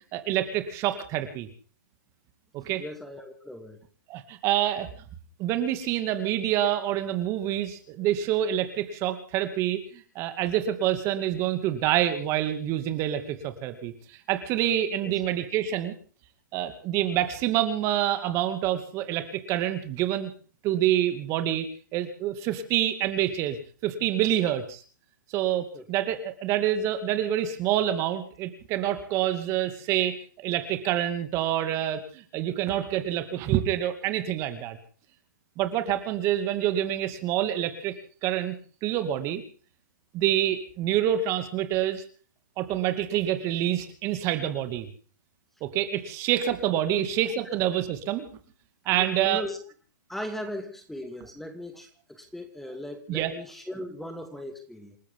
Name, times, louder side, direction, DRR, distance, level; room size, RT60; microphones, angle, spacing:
voice 1, 0.1-1.5 2.5-2.8 4.1-4.9 5.4-13.9 14.3-15.9 16.5-20.3 20.6-21.7 21.9-24.8 25.3-34.8 35.6-37.9 38.2-38.5 38.8-39.4 40.1-42.0 42.6-44.9 45.6-48.3 48.9-49.4 53.1-53.3, right 11 dB, 30° right, 8 dB, 2.5 m, -27 dB
voice 2, 2.7-3.8 15.0-15.1 25.7-25.9 47.0-47.1 48.9-49.6 50.1-55.0, left 1 dB, ahead, 6 dB, 2.4 m, -38 dB
28.5 x 13.5 x 3.9 m, 0.41 s
hypercardioid pair, 135°, 10 cm